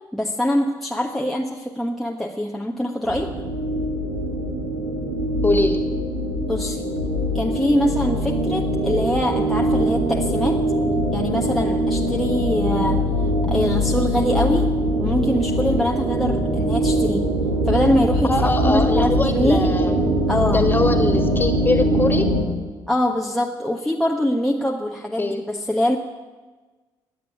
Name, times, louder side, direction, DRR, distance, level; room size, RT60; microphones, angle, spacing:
voice 1, 0.1-3.3 6.5-6.9 7.3-10.6 11.1-13.0 13.5-14.7 15.0-17.3 17.7-19.7 20.3-20.7 22.9-26.0, equal, ahead, -1 dB, 1.4 m, -23 dB
sound 1, 3.1-22.4, equal, 90° right, 2.9 m, -22 dB
voice 2, 5.4-5.8 18.3-20.0 20.4-22.3 25.2-25.4, left 2 dB, 20° left, 6 dB, 2.3 m, -22 dB
20.5 x 7.7 x 8.5 m, 1.3 s
hypercardioid pair, 60°, 10 cm